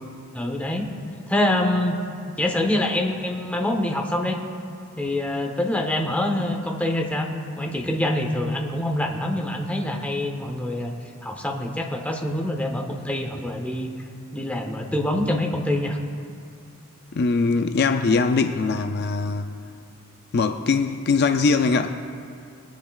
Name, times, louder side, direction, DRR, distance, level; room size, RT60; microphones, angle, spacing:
voice 1, 0.3-0.9 1.3-2.0 2.4-4.4 5.0-7.3 7.6-10.9 11.2-13.9 14.3-16.0, left 1 dB, 5° left, 2 dB, 0.9 m, -25 dB
voice 2, 17.1-19.5 20.3-22.0, left 4 dB, 50° left, 7 dB, 0.4 m, -21 dB
21.5 x 10.5 x 2.4 m, 2.4 s
head